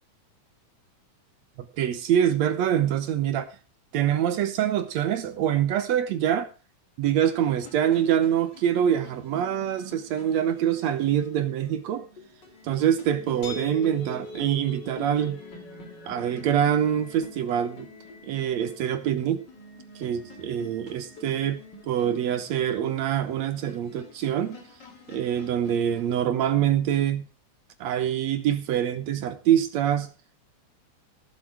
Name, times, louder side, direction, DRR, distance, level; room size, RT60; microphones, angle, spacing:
voice 1, 1.6-3.6 3.9-6.5 7.0-12.1 12.6-15.4 16.1-17.9 18.2-19.4 20.0-21.6 21.9-24.6 25.1-27.3 27.8-30.1, right 10 dB, 70° right, 2.0 m, -25 dB
sound 1, 7.4-26.1, left 4 dB, 35° left, 3.0 m, -47 dB
sound 2, 13.4-19.2, left 2 dB, 50° left, 3.5 m, -44 dB
16.5 x 7.9 x 4.7 m
omnidirectional pair, 3.6 m